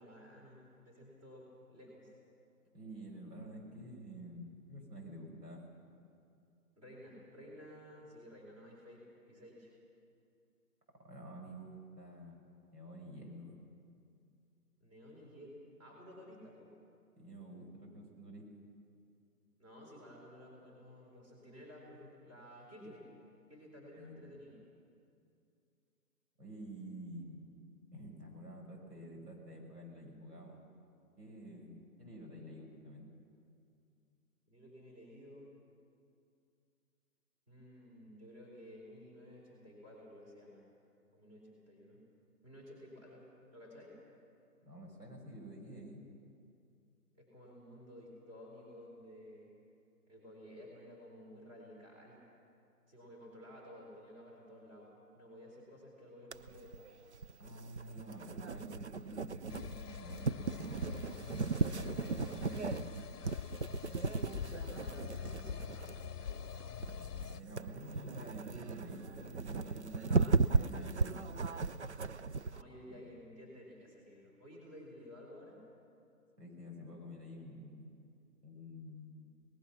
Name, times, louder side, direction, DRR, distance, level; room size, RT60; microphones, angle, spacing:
voice 1, 0.0-2.1 6.8-9.7 14.8-16.7 19.6-23.1 23.5-24.6 34.5-35.6 37.5-40.6 41.1-42.0 42.4-43.9 47.1-49.5 50.1-52.2 52.9-56.9 61.6-62.1 63.9-65.7 72.5-75.6, equal, 20° right, -3 dB, 4.2 m, -54 dB
voice 2, 2.7-5.6 11.1-12.4 12.7-13.6 17.2-18.5 24.0-24.3 26.4-27.5 27.9-30.6 31.2-33.1 44.6-46.0 57.4-61.0 61.6-62.9 66.9-71.3 72.9-73.0 76.4-77.9 78.4-79.3, right 1 dB, 85° right, 0 dB, 6.2 m, -49 dB
sound 1, 56.3-72.6, right 4 dB, 50° right, 0.5 m, -36 dB
sound 2, 59.5-67.4, left 8 dB, 75° left, 0.7 m, -45 dB
24.5 x 19.5 x 6.0 m, 2.4 s
hypercardioid pair, 165°, 47 cm